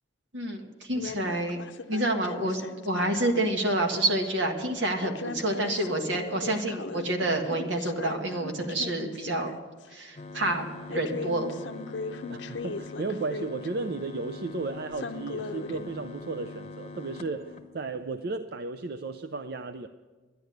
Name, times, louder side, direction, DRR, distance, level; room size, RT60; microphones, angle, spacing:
voice 1, 0.3-1.6 1.9-9.5 9.9-11.5, right 1 dB, 80° right, 3 dB, 1.8 m, -28 dB
sound 1, 0.9-3.5 5.0-9.5 9.9-10.0 10.9-13.7 14.9-15.9, left 4 dB, 75° left, 0.6 m, -39 dB
sound 2, 10.2-18.2, left 3 dB, 35° left, 0.8 m, -43 dB
voice 2, 12.3-19.9, right 3 dB, 55° right, 8 dB, 0.5 m, -34 dB
11.5 x 10.5 x 7.9 m, 1.3 s
head